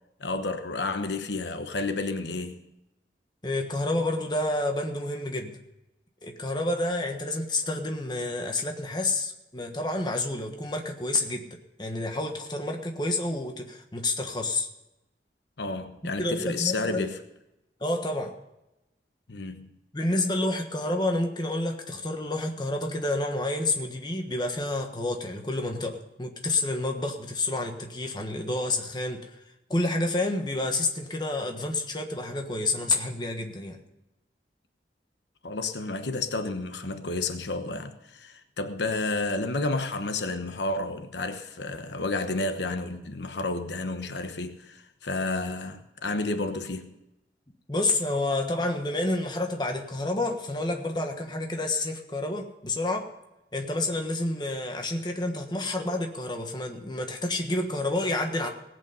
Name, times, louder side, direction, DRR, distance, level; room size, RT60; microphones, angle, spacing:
voice 1, 0.2-2.6 15.6-17.2 19.3-19.7 35.4-46.9, left 3 dB, 85° left, 1.1 m, -31 dB
voice 2, 3.4-5.6 6.2-14.7 16.2-17.0 17.8-18.3 19.9-29.3 29.7-33.8 47.7-53.1 53.5-58.5, left 2 dB, 25° left, 1.3 m, -29 dB
18.5 x 8.4 x 5.5 m
head